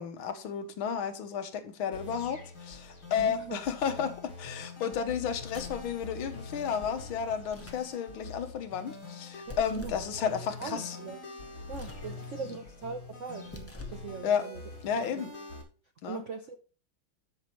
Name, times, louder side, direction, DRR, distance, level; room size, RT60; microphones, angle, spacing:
voice 1, 0.0-11.0 14.2-14.5 14.8-15.3 16.0-16.2, left 7 dB, 80° left, 1.9 m, -32 dB
sound 1, 1.9-15.6, left 3 dB, 65° left, 3.0 m, -45 dB
voice 2, 3.2-3.6 9.5-9.9 10.6-11.2 11.7-14.6 15.2-15.3 16.1-16.6, right 5 dB, 70° right, 0.7 m, -40 dB
sound 2, 5.5-5.9 7.4-7.9 9.5-10.1 11.6-12.1 13.4-14.1, left 1 dB, 10° left, 1.0 m, -45 dB
13.0 x 6.0 x 3.2 m
omnidirectional pair, 2.2 m